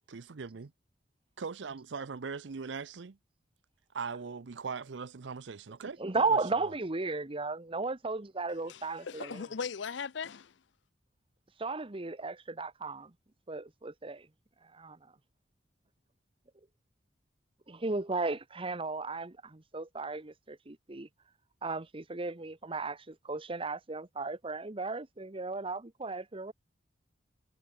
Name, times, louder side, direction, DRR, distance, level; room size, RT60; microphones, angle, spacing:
voice 1, 0.1-0.7 1.4-3.2 3.9-6.0 6.3-6.7, right 5 dB, 70° right, 0.6 m, -40 dB
voice 2, 5.8-9.5 11.6-13.1 13.5-14.3 14.7-15.0 17.7-21.1 21.6-26.5, right 3 dB, 30° right, 1.1 m, -35 dB
voice 3, 8.7-10.5, left 6 dB, 70° left, 0.6 m, -39 dB
head